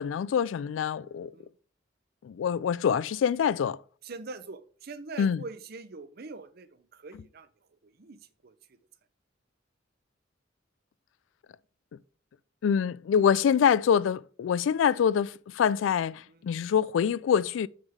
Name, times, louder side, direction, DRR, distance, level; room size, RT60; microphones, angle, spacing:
voice 1, 0.0-1.3 2.2-3.8 5.2-5.4 12.6-17.7, left 7 dB, 80° left, 0.3 m, -25 dB
voice 2, 4.0-8.8 16.3-16.4, right 3 dB, 55° right, 0.7 m, -44 dB
7.3 x 6.5 x 3.5 m
head